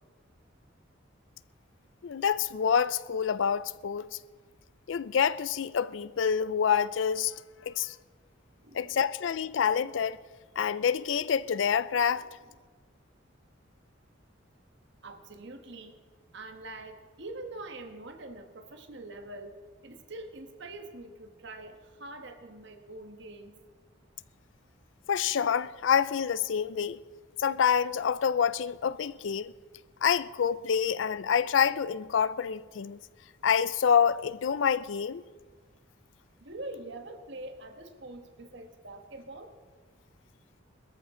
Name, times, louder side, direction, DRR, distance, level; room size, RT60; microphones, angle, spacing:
voice 1, 2.0-4.2 4.9-7.3 7.6-8.0 8.7-10.2 10.6-12.2 25.1-27.0 27.4-29.5 30.0-33.0 33.4-35.2, left 7 dB, 70° left, 0.4 m, -27 dB
voice 2, 8.6-9.0 12.0-12.3 15.0-16.0 16.3-23.6 36.4-39.5, right 2 dB, 65° right, 1.4 m, -44 dB
22.0 x 13.5 x 3.8 m
head